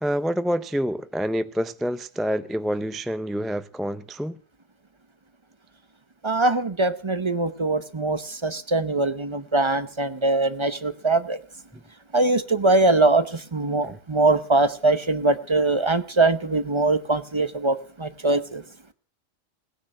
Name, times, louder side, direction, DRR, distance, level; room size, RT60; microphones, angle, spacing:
voice 1, 0.0-4.4 13.8-14.0, equal, ahead, 0.4 m, -27 dB
voice 2, 6.2-11.4 12.1-18.6, right 2 dB, 30° right, 0.8 m, -22 dB
18.0 x 9.9 x 7.7 m
omnidirectional pair, 1.2 m